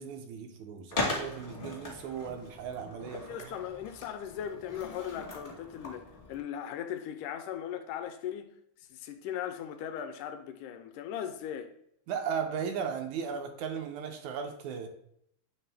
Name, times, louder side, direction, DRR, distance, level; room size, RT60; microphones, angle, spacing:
voice 1, 0.0-3.6 12.1-14.9, right 7 dB, 80° right, 1.8 m, -36 dB
Skateboard, 0.9-6.4, left 2 dB, 50° left, 0.6 m, -39 dB
voice 2, 3.1-8.5 8.9-11.7, left 9 dB, 85° left, 2.1 m, -38 dB
8.5 x 3.3 x 3.3 m
omnidirectional pair, 3.6 m